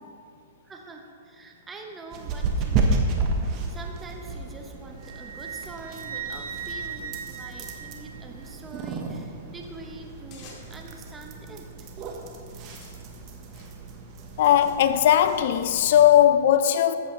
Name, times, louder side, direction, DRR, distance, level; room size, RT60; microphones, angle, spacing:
voice 1, 0.6-3.3 3.7-11.9, right 2 dB, 15° right, 0.9 m, -44 dB
sound 1, 2.1-16.3, right 3 dB, 35° right, 1.2 m, -32 dB
Wind instrument woodwind instrument, 5.0-8.5, right 7 dB, 70° right, 0.8 m, -38 dB
sound 2, 10.3-10.9 11.7-12.0 12.5-14.7, left 4 dB, 35° left, 2.1 m, -52 dB
voice 2, 14.4-16.9, left 11 dB, 60° left, 0.5 m, -18 dB
13.5 x 8.4 x 3.2 m
hypercardioid pair, 120°, 0 cm